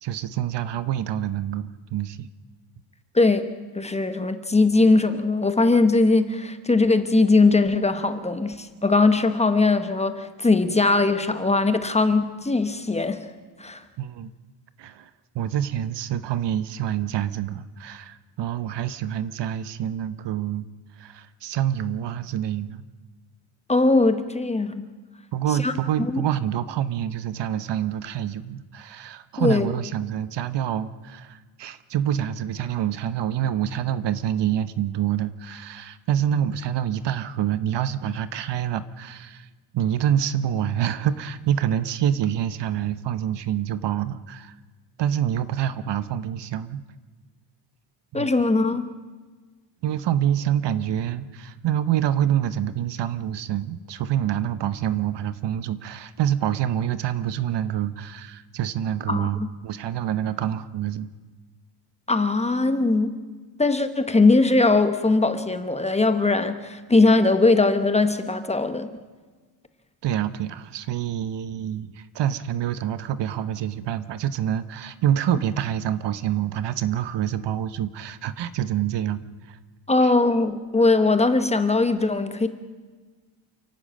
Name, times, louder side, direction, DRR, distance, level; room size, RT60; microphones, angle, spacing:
voice 1, 0.0-2.3 14.0-14.3 14.8-15.1 15.3-20.7 21.0-22.8 25.3-39.5 39.7-44.5 45.0-46.8 48.1-48.3 49.8-61.1 70.0-79.2 79.5-79.6 80.0-80.1, right 10 dB, 55° right, 14 dB, 1.0 m, -26 dB
voice 2, 3.1-3.4 3.7-13.3 13.6-13.8 23.7-24.9 25.6-25.7 26.1-26.2 29.4-29.7 48.1-48.9 59.1-59.5 62.1-63.2 63.6-68.9 79.9-82.5, left 3 dB, 15° left, 10 dB, 1.0 m, -20 dB
28.5 x 12.0 x 8.8 m, 1.4 s
cardioid pair, 170°, 50 cm